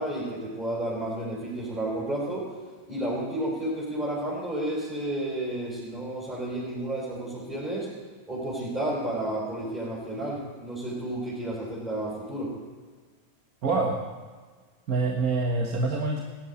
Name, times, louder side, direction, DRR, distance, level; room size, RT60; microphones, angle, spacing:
voice 1, 0.0-2.5 2.9-7.9 8.3-12.5, right 1 dB, 20° right, -7 dB, 4.5 m, -31 dB
voice 2, 13.6-14.0 14.9-16.2, right 3 dB, 40° right, 2 dB, 1.4 m, -25 dB
19.0 x 10.5 x 4.3 m, 1.5 s
figure-of-eight pair, 90°, 0 cm